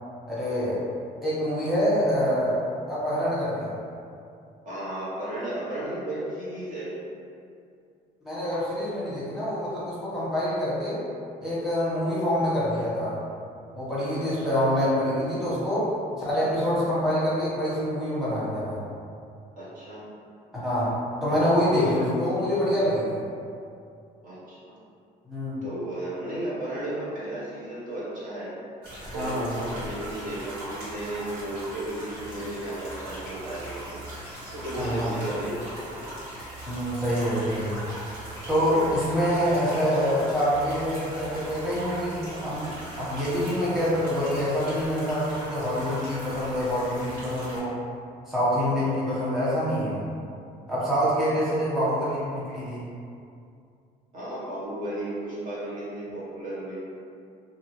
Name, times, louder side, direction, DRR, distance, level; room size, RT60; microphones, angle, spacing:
voice 1, 0.3-0.8 1.2-2.6 2.9-3.7 8.2-11.0 11.4-13.2 13.7-15.9 16.2-18.8 20.5-23.2 25.3-25.6 29.1-29.7 34.8-35.3 36.7-37.8 38.5-47.8 48.3-50.0 50.7-52.9, equal, ahead, -11 dB, 1.1 m, -26 dB
voice 2, 4.6-7.0 8.5-8.6 12.4-12.5 14.2-14.7 16.4-16.5 19.6-20.0 21.8-22.1 24.2-24.7 25.6-28.6 29.1-34.0 34.5-36.1 38.9-39.2 48.6-49.0 54.1-56.8, right 1 dB, 50° right, -9 dB, 1.0 m, -34 dB
sound 1, 28.8-47.6, right 1 dB, 80° right, 1.3 m, -39 dB
2.7 x 2.6 x 3.0 m, 2.4 s
cardioid pair, 110°, 17 cm